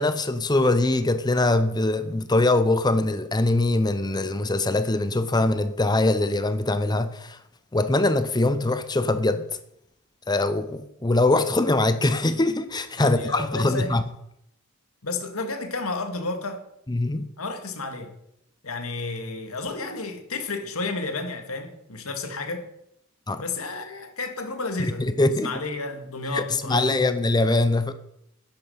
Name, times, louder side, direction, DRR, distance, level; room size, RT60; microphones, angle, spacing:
voice 1, 0.0-7.4 7.7-9.4 10.3-14.0 16.9-17.3 23.3-23.4 24.8-25.5 26.3-26.4 26.7-27.9, left 2 dB, 20° left, 0.7 m, -22 dB
voice 2, 13.0-14.0 15.0-16.6 17.4-18.2 18.6-22.7 23.4-25.1 25.4-27.0, left 3 dB, 90° left, 2.1 m, -31 dB
12.0 x 10.5 x 5.7 m
head